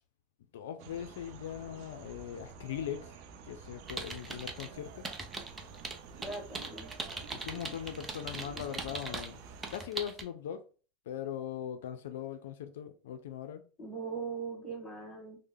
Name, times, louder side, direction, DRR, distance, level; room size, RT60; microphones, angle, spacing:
voice 1, 0.5-3.2 3.4-5.1 7.3-9.4 9.7-10.6 11.1-13.6, left 9 dB, 85° left, 0.3 m, -40 dB
sound 1, 0.8-9.8, right 6 dB, 65° right, 0.5 m, -50 dB
sound 2, 3.9-4.7 5.0-9.3 9.6-10.2, right 3 dB, 15° right, 0.6 m, -40 dB
voice 2, 6.2-6.9 13.8-15.4, right 5 dB, 5° left, 1.6 m, -40 dB
3.2 x 2.0 x 3.6 m
supercardioid pair, 120°, 0 cm